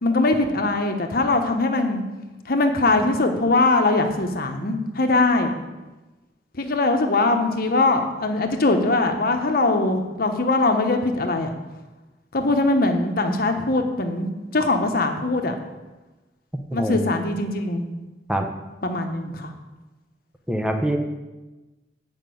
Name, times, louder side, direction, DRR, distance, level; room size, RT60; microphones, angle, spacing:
voice 1, 0.0-2.0 2.5-5.5 6.6-11.5 12.3-15.5 16.7-17.9 18.8-19.5, left 2 dB, 55° left, 5 dB, 1.1 m, -21 dB
voice 2, 16.7-17.1 18.3-18.5 20.5-21.0, right 1 dB, 5° right, 5 dB, 0.9 m, -24 dB
9.0 x 5.4 x 7.7 m, 1.1 s
head